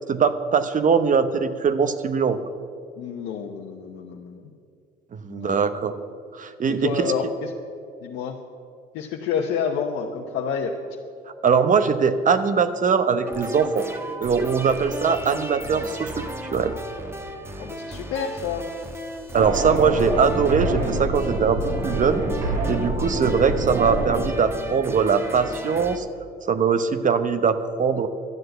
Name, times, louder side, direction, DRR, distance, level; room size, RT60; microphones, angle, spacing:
voice 1, 0.1-2.4 5.1-5.9 6.3-7.1 11.4-13.9 14.2-16.7 19.3-22.2 22.7-26.1 26.5-28.1, right 6 dB, 45° right, 11 dB, 0.9 m, -21 dB
voice 2, 3.0-4.5 5.3-5.6 6.7-7.5 8.0-8.4 8.9-10.7 17.6-18.6, left 6 dB, 85° left, 0 dB, 0.9 m, -29 dB
sound 1, 13.3-26.0, right 1 dB, 15° right, 1.2 m, -35 dB
sound 2, 19.3-24.3, right 2 dB, 80° right, 2.8 m, -26 dB
12.0 x 7.8 x 7.9 m, 2.3 s
supercardioid pair, 75°, 18 cm